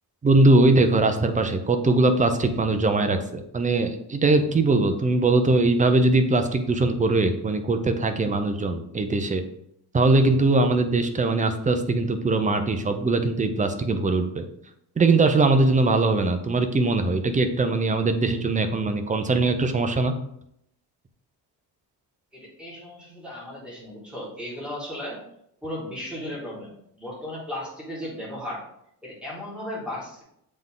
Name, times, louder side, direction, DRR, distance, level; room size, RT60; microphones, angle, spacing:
voice 1, 0.2-9.4 9.9-14.5 15.0-20.1, right 2 dB, 20° right, 7 dB, 0.6 m, -21 dB
voice 2, 22.3-25.2 25.6-28.6 29.0-30.2, left 1 dB, ahead, -6 dB, 2.5 m, -35 dB
7.6 x 3.7 x 3.8 m, 0.74 s
cardioid pair, 140°, 41 cm